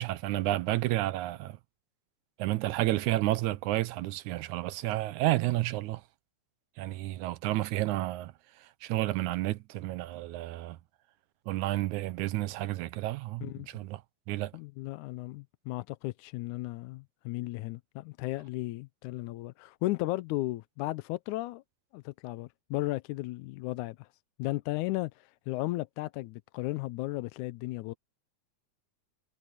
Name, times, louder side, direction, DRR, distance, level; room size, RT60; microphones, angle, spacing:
voice 1, 0.0-1.6 2.4-6.0 6.8-8.3 8.6-10.8 11.5-14.0 14.3-14.5, right 16 dB, 80° right, 2.1 m, -31 dB
voice 2, 14.5-21.6 21.9-24.1 24.4-27.9, left 19 dB, 80° left, 2.0 m, -35 dB
omnidirectional pair, 3.5 m